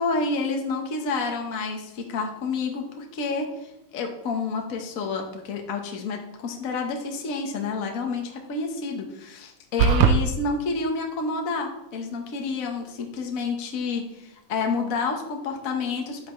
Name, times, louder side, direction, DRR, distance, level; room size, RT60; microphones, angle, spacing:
voice 1, 0.0-3.5 3.9-16.3, left 4 dB, 45° left, 2 dB, 1.5 m, -29 dB
sound 1, 9.8-10.2, right 6 dB, 80° right, 1.6 m, -17 dB
12.0 x 8.0 x 3.2 m, 0.89 s
omnidirectional pair, 2.4 m